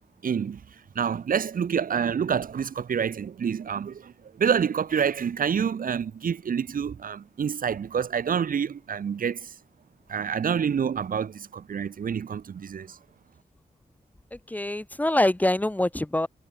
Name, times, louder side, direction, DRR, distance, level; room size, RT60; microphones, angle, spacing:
voice 1, 0.2-0.6 0.9-9.5 10.1-13.0, right 7 dB, 75° right, 1.1 m, -27 dB
voice 2, 14.3-16.3, left 1 dB, 10° left, 1.3 m, -25 dB
wide cardioid pair, 180°, 15 cm